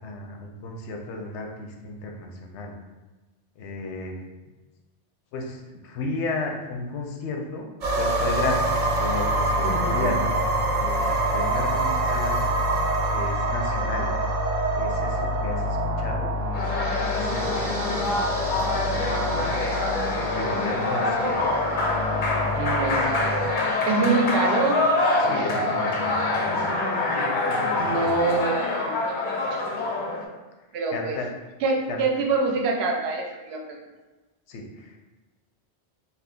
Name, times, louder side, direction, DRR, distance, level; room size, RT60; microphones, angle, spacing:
voice 1, 0.0-2.7 3.6-4.1 5.3-7.7 8.0-10.3 10.7-12.5 13.1-14.1 14.8-16.6 16.9-19.5 20.2-21.5 24.0-24.1 25.2-26.7 27.7-28.2 30.9-31.3 31.9-32.0 34.5-35.0, left 2 dB, 90° left, 2 dB, 0.9 m, -34 dB
sound 1, 7.8-23.5, right 1 dB, 50° right, 0.5 m, -26 dB
voice 2, 9.6-10.1 22.4-23.1 23.9-24.9 25.3-25.5 27.8-29.1 29.5-29.9 30.7-31.2 31.6-33.8, right 3 dB, 75° right, 1 dB, 0.8 m, -26 dB
sound 2, 16.5-30.2, left 2 dB, 55° left, 0.6 m, -25 dB
2.7 x 2.3 x 3.5 m, 1.1 s
omnidirectional pair, 1.1 m